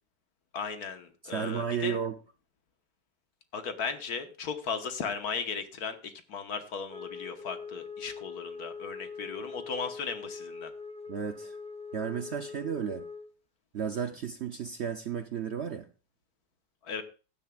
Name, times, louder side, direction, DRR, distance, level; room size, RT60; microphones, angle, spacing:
voice 1, 0.5-2.0 3.5-10.7 16.8-17.0, left 5 dB, 60° left, 1.6 m, -36 dB
voice 2, 1.2-2.2 11.1-11.6 11.9-13.1 13.7-15.9, right 8 dB, 70° right, 0.6 m, -33 dB
Wind instrument woodwind instrument, 6.9-13.3, left 5 dB, 10° left, 0.4 m, -42 dB
15.5 x 10.5 x 2.4 m
omnidirectional pair, 1.9 m